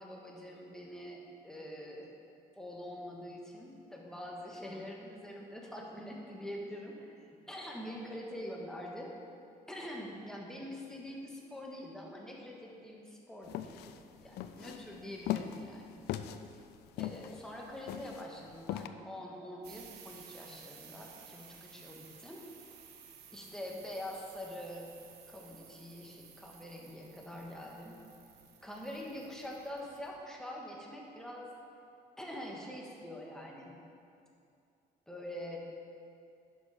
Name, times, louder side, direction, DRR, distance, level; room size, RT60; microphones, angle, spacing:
voice 1, 0.0-2.1 2.6-7.1 7.5-9.1 9.7-16.0 17.0-22.8 23.3-24.9 25.3-28.0 28.6-31.5 32.2-33.7 35.1-35.6, left 1 dB, 5° left, -2 dB, 1.5 m, -45 dB
sound 1, 13.5-18.9, left 12 dB, 75° left, 0.5 m, -39 dB
sound 2, 19.6-30.1, right 7 dB, 80° right, 1.1 m, -55 dB
10.5 x 6.3 x 4.9 m, 2.5 s
cardioid pair, 110°, 17 cm